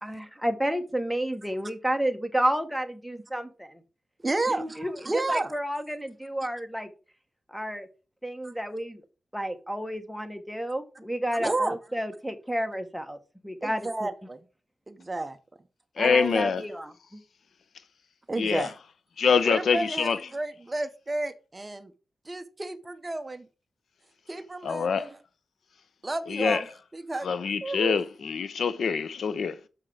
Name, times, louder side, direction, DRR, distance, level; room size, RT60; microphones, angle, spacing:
voice 1, 0.0-3.8 4.5-6.9 7.5-7.9 8.2-9.0 9.3-13.2 13.4-13.9 16.0-17.2, equal, ahead, 1.0 m, -31 dB
voice 2, 4.2-5.5 8.4-8.5 11.3-11.8 13.6-14.4 14.9-15.4 16.0-16.4 18.3-18.7 19.4-21.9 22.3-23.5 24.3-25.2 26.0-26.7 26.9-27.3 27.6-28.0, right 2 dB, 20° right, 0.6 m, -31 dB
voice 3, 16.0-16.6 18.4-18.7 19.2-20.2 24.6-25.1 26.3-26.6 27.2-29.7, left 5 dB, 75° left, 0.6 m, -25 dB
6.7 x 5.8 x 4.7 m
wide cardioid pair, 175°, 0 cm